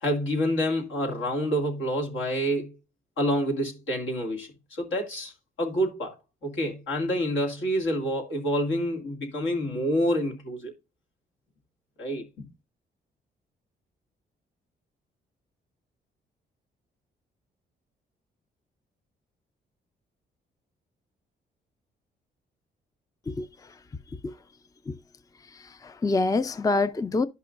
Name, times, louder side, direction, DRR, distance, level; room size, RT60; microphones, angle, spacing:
voice 1, 0.0-2.7 3.2-5.3 5.6-6.1 6.4-10.7 12.0-12.5, equal, 80° left, 2.2 m, -27 dB
voice 2, 25.8-27.3, left 3 dB, 20° left, 0.4 m, -25 dB
11.5 x 5.5 x 2.5 m
cardioid pair, 70°, 19 cm